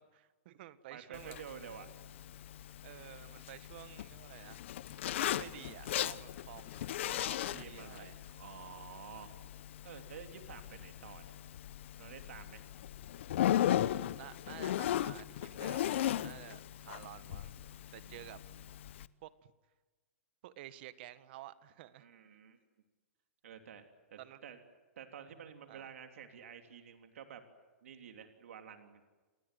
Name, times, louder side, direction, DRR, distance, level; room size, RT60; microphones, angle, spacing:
voice 1, 0.0-1.4 2.8-4.6 5.2-8.1 14.2-17.6 17.9-18.4 19.2-19.5 20.4-22.1 24.2-24.4 25.7-25.9, right 14 dB, 50° right, 14 dB, 1.5 m, -52 dB
voice 2, 0.9-1.9 7.3-9.3 9.8-11.4 12.0-12.7 18.0-18.6 22.0-22.6 23.4-23.8 24.1-24.6 25.0-27.4 27.8-29.0, right 8 dB, 80° right, 6 dB, 3.3 m, -51 dB
Zipper (clothing), 1.1-19.1, left 12 dB, 60° left, 1.0 m, -38 dB
29.0 x 20.5 x 9.4 m, 1.3 s
hypercardioid pair, 160°, 7 cm